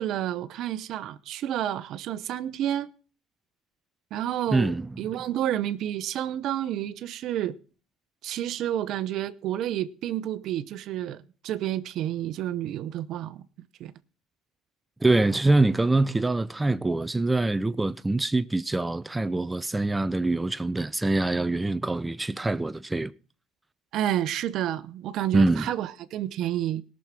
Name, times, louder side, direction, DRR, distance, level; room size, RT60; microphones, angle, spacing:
voice 1, 0.0-2.9 4.1-7.6 8.2-13.4 13.8-13.9 23.9-26.8, right 12 dB, 60° right, 0.8 m, -30 dB
voice 2, 4.5-4.9 15.0-23.1 25.3-25.7, right 2 dB, 10° right, 0.5 m, -24 dB
18.0 x 6.4 x 5.9 m
supercardioid pair, 90°, 0 cm